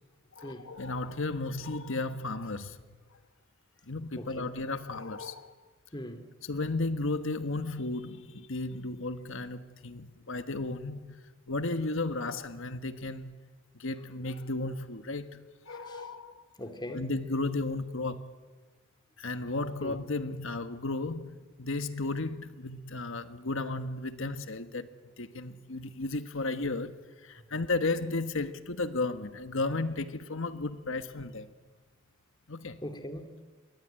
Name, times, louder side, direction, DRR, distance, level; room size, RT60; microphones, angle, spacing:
voice 1, 0.3-2.8 3.8-5.5 6.4-11.2 11.5-13.4 13.8-16.4 16.9-18.3 19.2-24.9 25.2-31.5 32.5-32.8, left 2 dB, 70° left, 1.5 m, -34 dB
voice 2, 4.2-4.5 5.9-6.2 15.9-16.1 16.6-17.1 19.8-20.0 32.8-33.3, left 1 dB, 20° left, 2.3 m, -40 dB
28.0 x 23.0 x 9.0 m
head